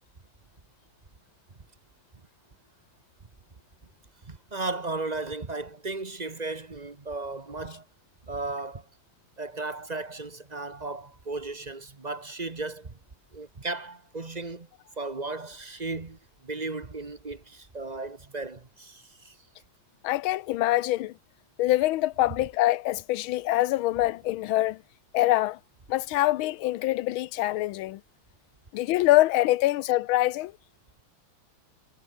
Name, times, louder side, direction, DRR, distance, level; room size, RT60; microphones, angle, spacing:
voice 1, 4.3-7.8 8.3-8.8 9.4-13.0 13.3-14.7 15.0-19.4, right 3 dB, 25° right, 1.2 m, -35 dB
voice 2, 20.0-21.1 21.6-24.8 25.1-25.6 25.9-28.0 28.7-30.5, left 16 dB, 75° left, 1.4 m, -24 dB
omnidirectional pair, 2.4 m